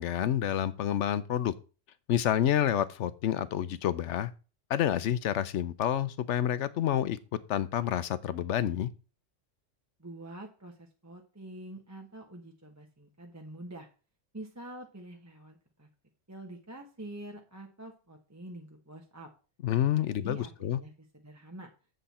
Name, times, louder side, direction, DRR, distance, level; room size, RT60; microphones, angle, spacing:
voice 1, 0.0-1.5 2.1-4.3 4.7-7.2 7.5-8.9 19.6-20.8, left 10 dB, 75° left, 15 dB, 1.0 m, -28 dB
voice 2, 10.0-13.9 14.3-15.9 16.3-19.3 19.9-21.7, right 1 dB, 15° right, 2 dB, 1.1 m, -46 dB
7.9 x 7.8 x 4.2 m, 0.34 s
omnidirectional pair, 1.3 m